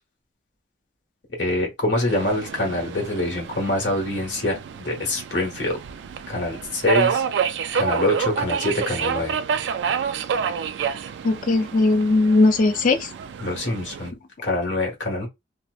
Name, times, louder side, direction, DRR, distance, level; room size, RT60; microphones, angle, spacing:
voice 1, 1.4-5.8 6.3-7.2 7.7-9.3 13.4-14.1 14.4-15.3, left 1 dB, 85° left, 1.2 m, -25 dB
Subway metro underground, 2.1-14.1, right 7 dB, 80° right, 0.3 m, -28 dB
voice 2, 11.2-13.0, left 2 dB, 45° left, 0.4 m, -18 dB
2.8 x 2.0 x 2.3 m
head